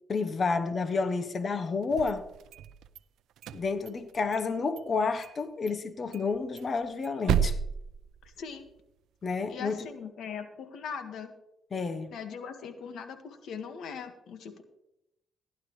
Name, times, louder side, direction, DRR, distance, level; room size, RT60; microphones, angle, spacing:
voice 1, 0.1-2.2 3.5-7.5 9.2-9.8 11.7-12.1, left 4 dB, 40° left, 1.0 m, -30 dB
sound 1, 1.8-3.0 3.4-4.5 4.8-4.9 5.2-5.4 5.7-5.8 6.1-8.7, right 8 dB, 80° right, 0.5 m, -33 dB
voice 2, 8.2-8.6 9.5-11.3 12.1-14.6, left 6 dB, 70° left, 1.7 m, -40 dB
15.5 x 11.5 x 3.2 m
cardioid pair, 90°, 0 cm